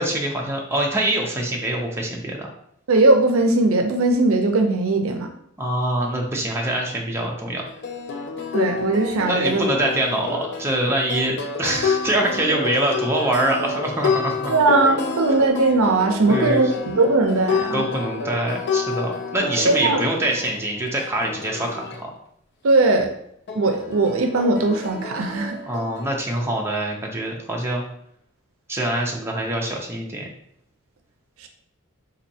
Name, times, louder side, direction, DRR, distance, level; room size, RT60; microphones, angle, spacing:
voice 1, 0.0-2.5 5.6-7.6 9.2-14.5 14.9-15.0 16.3-16.6 17.7-22.1 25.7-27.8 28.7-30.3, right 1 dB, 10° right, -1 dB, 0.5 m, -24 dB
voice 2, 2.9-5.3 8.5-9.6 14.5-17.8 19.6-20.0 22.6-23.1 23.5-25.6 31.4-31.5, right 2 dB, 70° right, 5 dB, 0.5 m, -19 dB
sound 1, 7.5-22.0 23.5-26.5, left 4 dB, 50° left, 0.4 m, -29 dB
4.2 x 2.6 x 2.7 m, 0.71 s
head